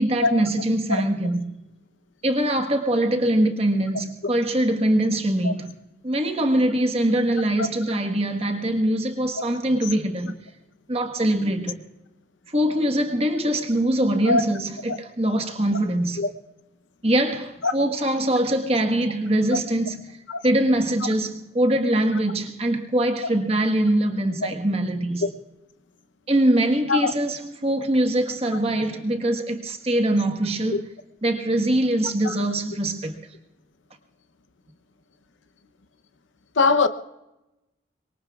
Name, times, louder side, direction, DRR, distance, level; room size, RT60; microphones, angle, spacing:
voice 1, 0.0-1.5 2.2-5.7 6.0-10.4 10.9-11.8 12.5-16.2 17.0-20.2 20.4-25.3 26.3-30.8 31.2-33.2, right 1 dB, 30° right, 1.3 m, -23 dB
voice 2, 36.6-36.9, left 4 dB, 80° left, 0.8 m, -21 dB
25.5 x 22.5 x 2.4 m
head